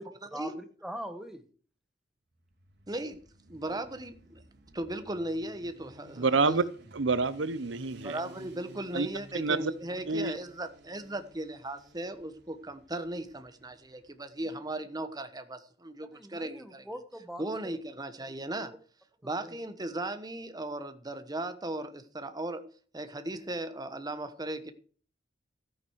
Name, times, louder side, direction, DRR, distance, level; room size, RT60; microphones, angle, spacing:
voice 1, 0.3-1.5 14.5-14.6 16.1-17.8 19.4-19.6, equal, ahead, 1.4 m, -42 dB
Motorcycle, 2.4-14.1, equal, 65° right, 3.0 m, -54 dB
voice 2, 2.9-3.2 3.5-4.4 4.7-6.6 8.0-16.9 17.4-18.7 19.2-22.7 22.9-24.7, right 1 dB, 20° right, 1.1 m, -37 dB
voice 3, 6.2-6.6 6.9-8.2 8.9-9.1 9.4-9.7 10.1-10.3, right 4 dB, 80° right, 0.8 m, -27 dB
13.5 x 9.1 x 4.7 m
head